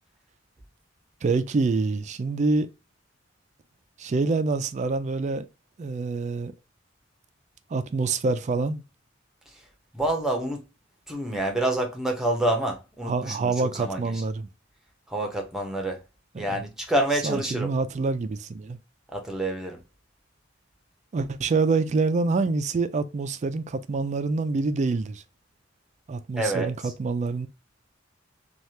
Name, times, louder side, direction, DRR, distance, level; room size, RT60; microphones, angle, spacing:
voice 1, 1.2-2.7 4.0-5.5 5.8-6.5 7.7-8.8 13.0-14.5 16.3-16.6 17.2-18.8 21.1-25.2 26.1-27.5, right 3 dB, 35° right, 0.3 m, -26 dB
voice 2, 9.9-10.6 11.1-14.1 15.1-16.0 16.3-17.7 19.1-19.8 26.4-26.7, right 1 dB, 5° right, 0.8 m, -27 dB
3.2 x 2.3 x 2.7 m
head